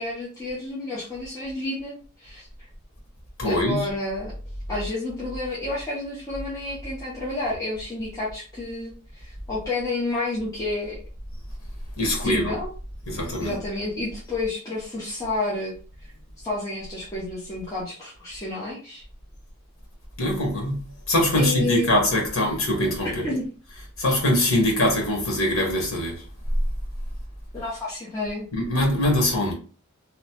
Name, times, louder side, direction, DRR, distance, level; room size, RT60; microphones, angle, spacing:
voice 1, 0.0-2.5 3.4-4.3 4.7-11.0 12.2-12.7 13.4-19.0 21.3-21.9 23.2-23.5 27.5-28.5, left 2 dB, 15° left, 0.8 m, -30 dB
voice 2, 3.4-3.9 12.0-12.5 13.1-13.5 20.2-20.8 21.1-23.3 24.0-26.2 28.5-29.5, left 1 dB, 65° left, 1.2 m, -22 dB
2.9 x 2.0 x 2.9 m
head